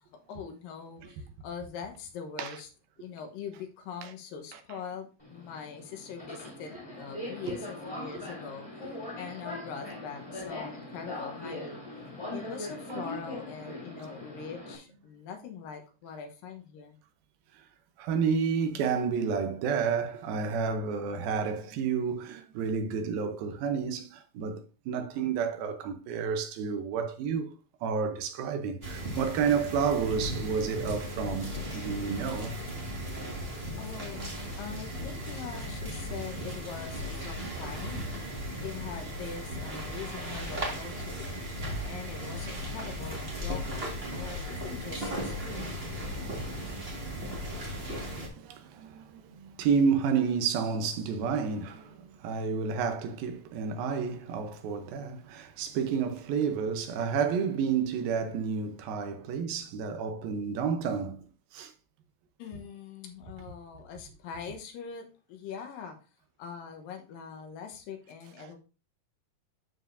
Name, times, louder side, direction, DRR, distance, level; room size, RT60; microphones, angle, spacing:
voice 1, 0.0-2.7 3.0-11.8 12.3-17.0 29.3-29.6 33.8-38.1 38.6-41.4 41.9-45.8 62.4-66.0 66.4-68.6, left 6 dB, 75° left, 2.7 m, -43 dB
Subway metro underground, 5.2-14.8, left 1 dB, 10° left, 2.0 m, -41 dB
voice 2, 18.0-27.5 27.8-32.6 48.3-61.3 61.5-61.7, right 6 dB, 90° right, 2.8 m, -30 dB
sound 1, 28.8-48.3, equal, 30° right, 1.1 m, -36 dB
12.5 x 4.8 x 2.6 m
omnidirectional pair, 4.1 m